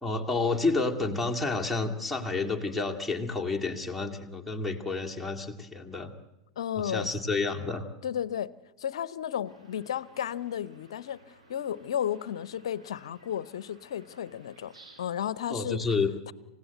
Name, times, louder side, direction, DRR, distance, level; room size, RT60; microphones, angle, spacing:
voice 1, 0.0-6.1 6.8-7.8 15.5-16.1, left 3 dB, ahead, -1 dB, 2.3 m, -30 dB
voice 2, 6.6-7.1 8.0-8.5 8.8-14.7 15.0-15.9 16.3-16.4, left 9 dB, 60° left, 20 dB, 0.8 m, -33 dB
sound 1, 9.4-15.1, right 2 dB, 80° right, 5.3 m, -57 dB
27.5 x 16.5 x 8.0 m, 1.0 s
figure-of-eight pair, 90°, 3 cm